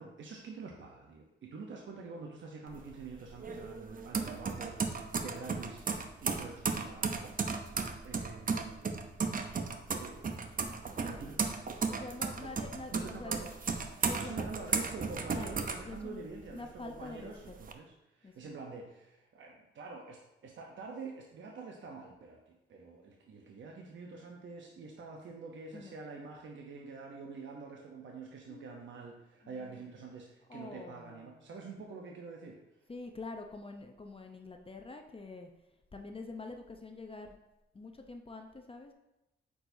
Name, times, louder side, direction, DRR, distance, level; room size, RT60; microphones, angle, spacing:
voice 1, 0.0-7.6 8.0-9.0 10.0-10.2 11.0-11.5 12.4-12.5 12.9-13.5 14.0-32.9, right 4 dB, 75° right, 0 dB, 0.8 m, -47 dB
sound 1, 2.7-16.5 16.9-17.7, right 5 dB, 45° right, 0.7 m, -35 dB
voice 2, 3.5-3.8 11.2-11.4 11.9-13.5 14.1-14.5 15.3-16.2 16.5-17.5 18.2-18.6 25.7-25.9 28.5-28.9 29.4-30.0 30.5-31.8 32.9-35.5 35.9-37.4 37.7-38.9, left 3 dB, 30° left, 4 dB, 0.7 m, -46 dB
8.4 x 4.7 x 2.7 m, 0.94 s
cardioid pair, 70°, 20 cm